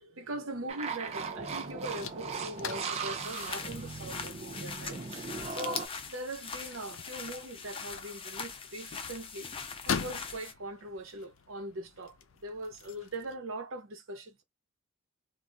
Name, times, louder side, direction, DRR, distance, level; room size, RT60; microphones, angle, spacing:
voice 1, 0.1-5.0 5.5-9.5 9.8-12.2 12.4-14.4, right 1 dB, 90° right, 0.9 m, -41 dB
sound 1, 0.7-5.9, right 5 dB, 35° right, 0.6 m, -38 dB
sound 2, 1.0-13.4, left 6 dB, 80° left, 0.5 m, -44 dB
sound 3, 3.2-10.5, left 5 dB, 25° left, 0.5 m, -41 dB
2.4 x 2.2 x 3.9 m
head